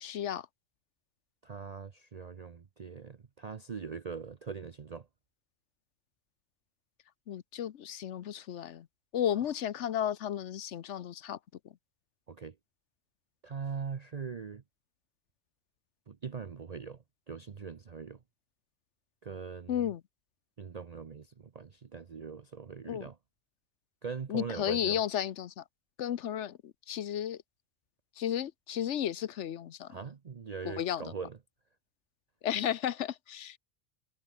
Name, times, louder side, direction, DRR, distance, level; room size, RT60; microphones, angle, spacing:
voice 1, 0.0-0.5 7.3-8.9 9.1-11.4 19.7-20.0 22.9-23.1 24.3-25.6 26.0-27.4 28.2-29.9 30.6-31.1 32.4-33.6, left 10 dB, 75° left, 1.1 m, -33 dB
voice 2, 1.4-5.1 12.3-12.6 13.4-14.6 16.1-18.2 19.2-19.8 20.6-23.2 24.0-25.0 29.9-31.4, right 6 dB, 40° right, 0.8 m, -41 dB
omnidirectional pair, 1.2 m